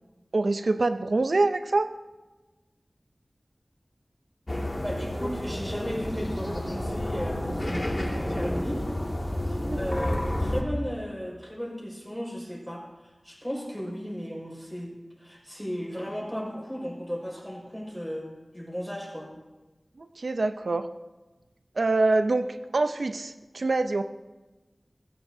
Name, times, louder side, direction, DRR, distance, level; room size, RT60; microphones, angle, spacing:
voice 1, 0.3-1.9 9.7-9.8 20.0-20.9 21.8-24.0, right 3 dB, 85° right, 8 dB, 0.6 m, -25 dB
sound 1, 4.5-10.6, left 1 dB, 35° left, 2.1 m, -30 dB
voice 2, 4.8-8.9 9.5-19.3, equal, 5° left, -2 dB, 5.3 m, -35 dB
23.0 x 15.0 x 2.7 m, 1.2 s
wide cardioid pair, 65°, 0 cm